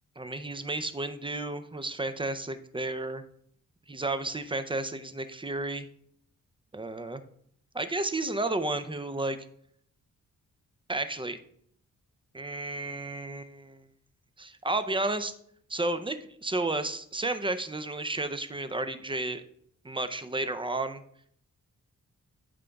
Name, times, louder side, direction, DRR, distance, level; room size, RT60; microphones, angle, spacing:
voice 1, 0.2-3.2 3.9-5.9 6.7-7.2 7.7-9.4 10.9-11.4 12.3-13.8 14.4-15.3 15.7-19.4 19.8-21.0, right 2 dB, 15° right, 10 dB, 0.4 m, -32 dB
12.0 x 5.1 x 2.3 m, 0.66 s
wide cardioid pair, 100°, 32 cm